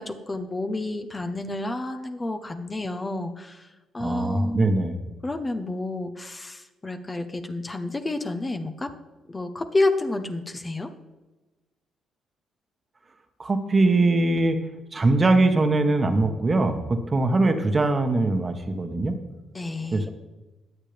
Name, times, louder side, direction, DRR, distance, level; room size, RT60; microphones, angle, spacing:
voice 1, 0.0-4.7 5.2-8.9 9.3-10.9 19.5-20.1, left 2 dB, 20° left, 6 dB, 0.9 m, -30 dB
voice 2, 4.0-4.9 13.4-14.6 14.9-19.2 19.9-20.1, right 2 dB, 30° right, 7 dB, 1.3 m, -22 dB
21.5 x 7.4 x 3.4 m, 1.1 s
cardioid pair, 90°, 0 cm